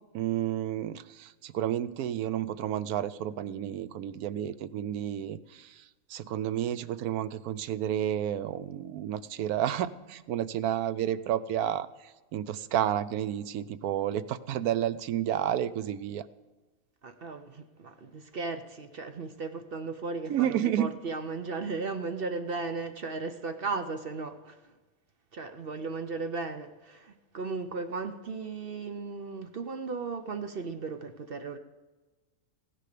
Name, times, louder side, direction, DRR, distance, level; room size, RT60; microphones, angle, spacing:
voice 1, 0.1-5.8 6.1-11.9 12.3-16.2 20.3-20.9, right 11 dB, 90° right, 1.1 m, -31 dB
voice 2, 17.0-24.7 25.3-31.6, right 4 dB, 50° right, 0.8 m, -36 dB
15.5 x 10.0 x 6.7 m
omnidirectional pair, 1.5 m